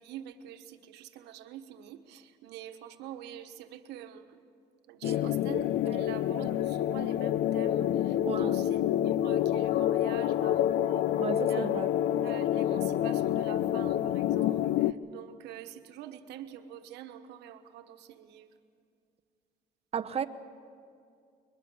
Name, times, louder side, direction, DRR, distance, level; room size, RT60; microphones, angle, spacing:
voice 1, 0.0-4.4 4.9-11.8 12.2-18.5, right 11 dB, 90° right, 8 dB, 1.3 m, -46 dB
sound 1, 5.0-14.9, left 12 dB, 75° left, 0.5 m, -28 dB
voice 2, 8.2-8.6 11.2-11.9 19.9-20.2, right 7 dB, 35° right, 8 dB, 1.0 m, -34 dB
22.5 x 20.5 x 7.1 m, 2.4 s
cardioid pair, 110°, 17 cm